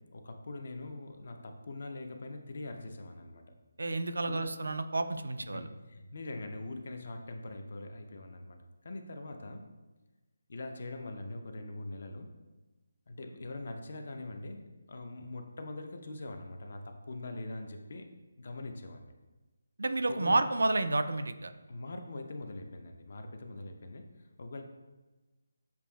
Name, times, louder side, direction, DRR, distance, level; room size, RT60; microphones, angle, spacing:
voice 1, 0.0-3.4 4.3-4.5 5.5-8.6 8.8-9.7 10.5-12.3 13.1-18.1 18.4-19.1 20.1-20.4 21.7-24.6, left 2 dB, 55° left, 5 dB, 0.5 m, -43 dB
voice 2, 3.8-5.7 19.8-21.5, right 2 dB, 80° right, 10 dB, 0.3 m, -30 dB
6.7 x 2.5 x 2.2 m, 1.2 s
figure-of-eight pair, 165°, 0 cm